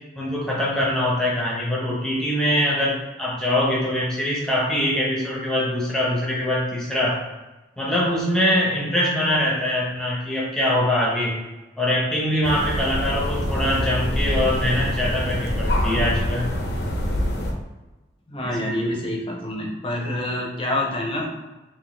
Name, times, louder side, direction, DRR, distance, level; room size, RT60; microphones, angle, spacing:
voice 1, 0.2-7.2 7.8-11.4 11.8-16.5 18.4-18.6, left 1 dB, 5° left, -5 dB, 0.9 m, -23 dB
sound 1, 12.4-17.5, equal, 65° left, 0.7 m, -25 dB
voice 2, 18.3-21.3, left 1 dB, 30° left, -1 dB, 0.7 m, -27 dB
3.8 x 2.6 x 3.8 m, 1.1 s
head